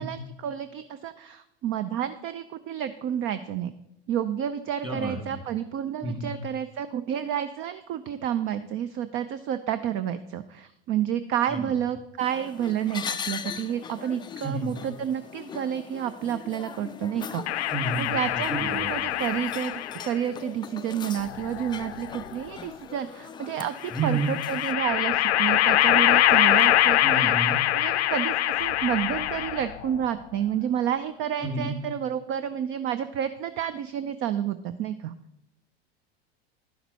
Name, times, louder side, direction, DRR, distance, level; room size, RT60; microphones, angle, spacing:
voice 1, 0.0-3.7 4.1-17.6 18.0-35.1, right 9 dB, 40° right, 12 dB, 0.5 m, -30 dB
voice 2, 4.8-5.4 6.0-6.3 11.5-11.6 14.4-14.8 17.7-18.9 23.9-24.3 27.0-27.6 31.4-31.8, right 3 dB, 15° right, 2 dB, 2.2 m, -30 dB
sound 1, 12.2-24.7, left 7 dB, 15° left, 0.3 m, -40 dB
sound 2, 17.5-20.1 21.2-22.2 23.8-29.8, left 13 dB, 90° left, 0.5 m, -24 dB
11.5 x 5.9 x 4.1 m, 0.84 s
hypercardioid pair, 100°, 32 cm